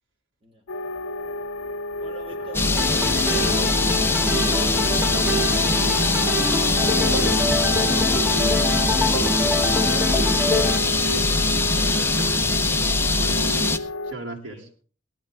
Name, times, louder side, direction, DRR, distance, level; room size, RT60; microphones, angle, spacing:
sound 1, 0.7-14.1, left 2 dB, 85° left, 0.6 m, -32 dB
voice 1, 2.0-4.3 6.7-10.1 11.7-12.4 14.4-14.7, right 4 dB, 30° right, 1 dB, 4.7 m, -45 dB
sound 2, 2.5-13.8, left 3 dB, 10° left, 0.8 m, -22 dB
sound 3, 2.8-10.8, left 1 dB, 10° right, 1.8 m, -26 dB
voice 2, 5.0-6.0 11.0-11.3 12.0-12.4 12.7-12.8 13.1-13.7 14.1-14.7, right 2 dB, 90° right, 1 dB, 3.0 m, -36 dB
17.5 x 12.0 x 3.6 m, 0.38 s
head